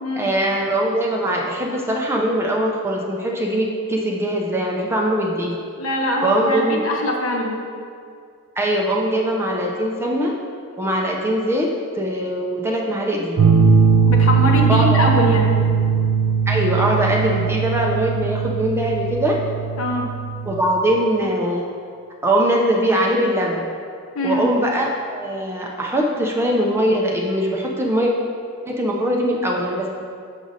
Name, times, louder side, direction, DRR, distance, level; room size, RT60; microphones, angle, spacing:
voice 1, 0.2-5.6 6.2-6.8 8.6-10.3 10.8-11.7 12.0-13.4 14.7-15.1 16.5-19.4 20.4-21.6 22.2-23.6 24.2-28.1 28.7-29.9, right 1 dB, 10° right, -1 dB, 0.6 m, -21 dB
voice 2, 5.8-7.6 14.0-15.5 19.8-20.1 24.1-24.5, left 1 dB, 70° left, 1 dB, 1.0 m, -22 dB
sound 1, 13.4-20.6, right 6 dB, 90° right, 0.6 m, -19 dB
6.4 x 6.2 x 4.1 m, 2.3 s
head